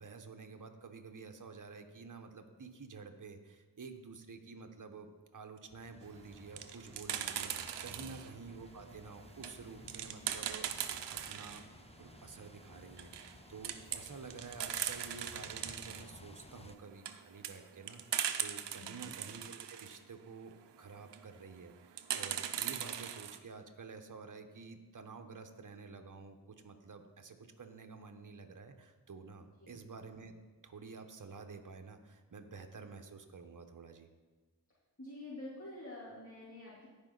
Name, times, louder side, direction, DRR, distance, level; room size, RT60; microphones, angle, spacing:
voice 1, 0.0-11.6 12.0-30.3 30.6-34.1, right 4 dB, 50° right, 6 dB, 1.2 m, -50 dB
sound 1, 5.7-16.8, left 3 dB, 15° left, 0.6 m, -57 dB
sound 2, 6.3-8.3 8.8-11.6 12.0-12.1 12.4-12.5 12.9-13.4 13.6-16.1 16.7-20.0 20.9-21.3 22.0-23.4, right 9 dB, 85° right, 0.7 m, -39 dB
voice 2, 18.7-19.1 29.6-29.7 35.0-36.9, left 1 dB, 30° left, -9 dB, 3.4 m, -48 dB
16.0 x 5.3 x 4.1 m, 1.3 s
cardioid pair, 45°, 41 cm